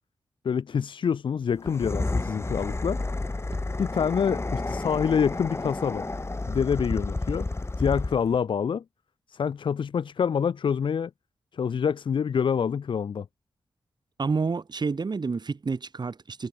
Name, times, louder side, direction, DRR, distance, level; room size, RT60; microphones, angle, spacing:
voice 1, 0.4-3.0 3.8-6.1 6.5-7.5 7.8-8.8 9.3-11.1 11.5-13.3, left 7 dB, 70° left, 0.8 m, -26 dB
sound 1, 1.6-8.4, left 2 dB, 30° left, 2.2 m, -31 dB
voice 2, 14.2-16.5, right 4 dB, 55° right, 3.7 m, -29 dB
cardioid pair, 45°, 9 cm